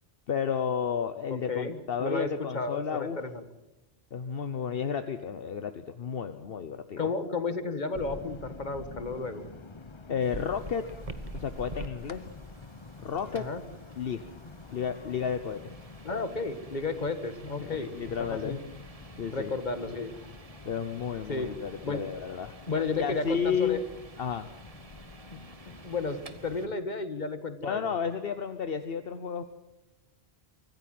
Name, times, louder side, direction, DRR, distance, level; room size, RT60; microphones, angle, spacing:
voice 1, 0.3-3.2 4.1-7.1 10.1-10.9 11.3-12.3 13.0-13.5 14.0-14.3 14.7-15.7 17.6-18.6 19.2-19.5 20.6-22.5 23.0-23.8 24.2-24.5 27.6-29.4, left 7 dB, 65° left, 9 dB, 1.1 m, -32 dB
voice 2, 1.3-3.4 7.0-9.5 13.3-13.6 16.0-18.6 19.3-20.1 21.3-21.5 21.8-22.0 22.7-23.8 25.3-25.4 25.7-27.9, left 3 dB, 45° left, 10 dB, 1.7 m, -33 dB
sound 1, 7.9-26.8, left 3 dB, 30° left, 0.9 m, -48 dB
sound 2, 10.2-26.7, right 3 dB, 35° right, 1.2 m, -49 dB
24.5 x 14.5 x 7.7 m, 0.99 s
omnidirectional pair, 1.1 m